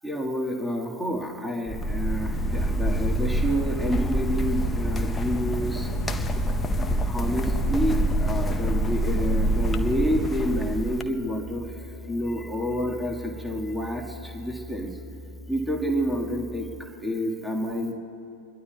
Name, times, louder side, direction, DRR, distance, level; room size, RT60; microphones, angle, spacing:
voice 1, 0.0-5.9 6.2-6.3 7.0-11.7 12.1-14.9 15.5-17.9, equal, ahead, 0 dB, 1.8 m, -29 dB
sound 1, 1.7-11.0, right 1 dB, 15° left, 0.8 m, -26 dB
sound 2, 11.2-16.8, left 1 dB, 55° left, 1.3 m, -42 dB
27.5 x 21.5 x 2.3 m, 2.7 s
figure-of-eight pair, 90°, 0 cm